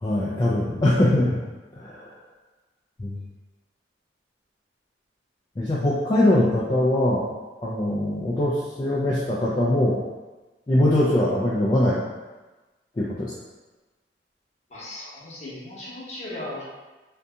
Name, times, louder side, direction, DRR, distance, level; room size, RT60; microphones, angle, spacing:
voice 1, 0.0-1.4 1.7-2.1 3.0-3.2 5.6-7.3 7.6-10.0 10.7-12.0 13.0-13.3, left 1 dB, 25° left, -7 dB, 0.3 m, -22 dB
voice 2, 14.7-16.6, left 1 dB, 40° left, -7 dB, 0.8 m, -37 dB
2.6 x 2.5 x 2.3 m, 1.2 s
head